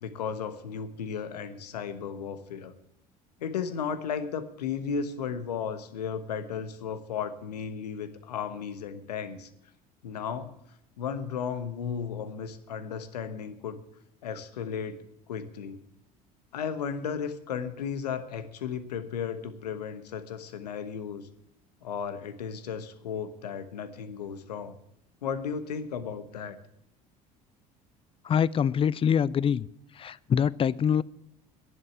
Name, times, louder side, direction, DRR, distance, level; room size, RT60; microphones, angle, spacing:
voice 1, 0.0-2.7 3.4-9.5 10.0-10.5 11.0-13.8 14.2-15.8 16.5-21.3 21.8-24.8 25.2-26.6, left 7 dB, 80° left, 11 dB, 1.1 m, -35 dB
voice 2, 28.3-29.6 30.0-31.0, left 8 dB, 25° left, 22 dB, 0.5 m, -24 dB
10.5 x 7.9 x 9.3 m, 0.77 s
hypercardioid pair, 65°, 20 cm